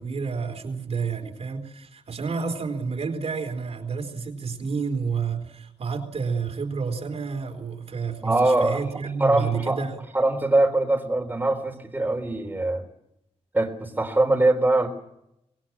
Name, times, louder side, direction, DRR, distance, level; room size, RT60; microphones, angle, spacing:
voice 1, 0.0-10.0, right 5 dB, 65° right, 4 dB, 4.0 m, -30 dB
voice 2, 8.2-8.8 9.2-9.8 10.1-12.9 13.5-14.9, right 2 dB, 15° right, 3 dB, 3.8 m, -22 dB
25.0 x 20.5 x 7.4 m, 0.81 s
wide cardioid pair, 135°, 12 cm